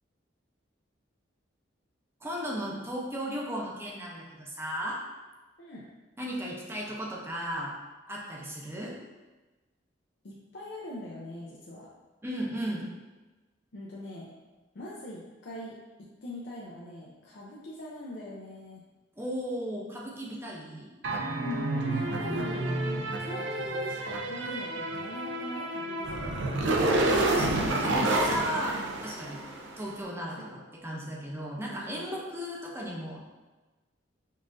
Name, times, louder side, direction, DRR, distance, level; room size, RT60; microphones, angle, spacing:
voice 1, 2.2-5.0 6.2-7.7 8.1-8.9 12.2-12.9 19.2-20.9 27.1-29.4 29.8-33.2, equal, 15° right, -3 dB, 0.6 m, -36 dB
voice 2, 5.6-5.9 10.2-11.9 13.7-14.3 14.7-18.9 21.9-22.9 23.2-26.7 30.4-30.7 31.6-32.3, equal, 65° left, -5 dB, 0.5 m, -42 dB
sound 1, 21.0-29.7, right 2 dB, 70° right, 0.4 m, -29 dB
5.3 x 2.5 x 2.5 m, 1.2 s
head